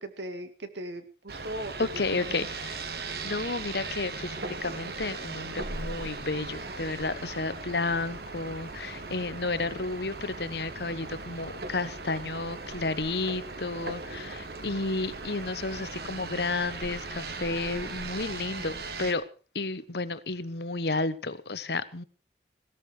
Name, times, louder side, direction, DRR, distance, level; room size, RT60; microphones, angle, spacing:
voice 1, 0.0-2.4, right 1 dB, 75° right, 2.3 m, -39 dB
sound 1, 1.3-19.1, right 3 dB, 60° right, 1.8 m, -38 dB
voice 2, 1.8-2.8 3.2-4.3 4.6-19.2 19.5-22.0, left 3 dB, 65° left, 1.1 m, -32 dB
17.0 x 13.5 x 4.9 m
head